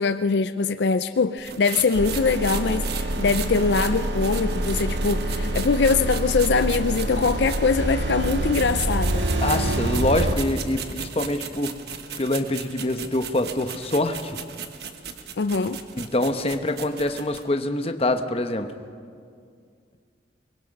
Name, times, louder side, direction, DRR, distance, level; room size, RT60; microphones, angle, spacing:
voice 1, 0.0-9.3 15.4-15.8, left 4 dB, 75° left, 12 dB, 0.5 m, -23 dB
sound 1, 1.4-7.8 8.2-17.4, right 7 dB, 65° right, 1.2 m, -37 dB
sound 2, 1.9-10.4, right 1 dB, 90° right, 1.6 m, -26 dB
voice 2, 9.4-11.7 12.2-14.4 15.9-18.7, left 1 dB, 35° left, 8 dB, 1.0 m, -25 dB
24.0 x 21.0 x 5.4 m, 2.2 s
head